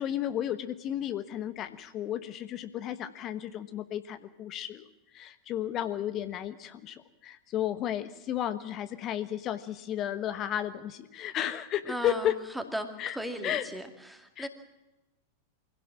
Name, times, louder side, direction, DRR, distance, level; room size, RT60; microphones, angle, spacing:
voice 1, 0.0-4.9 5.1-12.4 13.0-13.2 13.4-13.7 14.4-14.5, left 11 dB, 35° left, 11 dB, 1.2 m, -33 dB
voice 2, 11.8-14.5, right 1 dB, 5° right, 6 dB, 2.4 m, -37 dB
25.0 x 16.5 x 7.5 m, 1.0 s
figure-of-eight pair, 90°, 0 cm